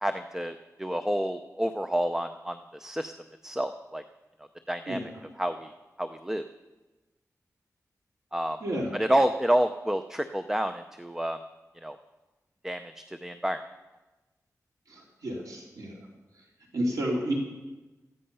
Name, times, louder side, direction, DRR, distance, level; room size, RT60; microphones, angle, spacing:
voice 1, 0.0-3.1 3.4-4.0 4.7-5.0 5.4-5.7 6.0-6.4 8.3-8.6 8.9-11.4 11.8-12.0 12.6-12.8 13.1-13.6, right 1 dB, 5° right, 8 dB, 0.6 m, -29 dB
voice 2, 14.9-15.9 16.7-17.3, right 1 dB, 90° right, -2 dB, 3.4 m, -31 dB
17.5 x 14.0 x 5.6 m, 1.1 s
wide cardioid pair, 145°, 6 cm